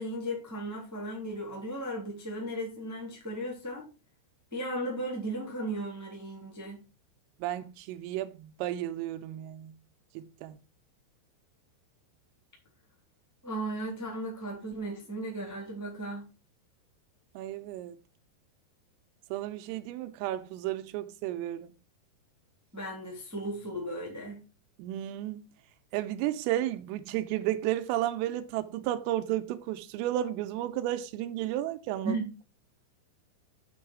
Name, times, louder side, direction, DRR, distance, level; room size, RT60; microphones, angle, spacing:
voice 1, 0.0-3.9 4.5-6.8 13.4-16.3 22.7-24.4 32.0-32.3, right 1 dB, 5° right, 1.9 m, -36 dB
voice 2, 7.4-9.7 10.2-10.6 17.4-18.0 19.3-21.7 24.8-25.4 25.9-32.1, right 13 dB, 90° right, 3.4 m, -33 dB
7.7 x 6.3 x 6.0 m
omnidirectional pair, 5.9 m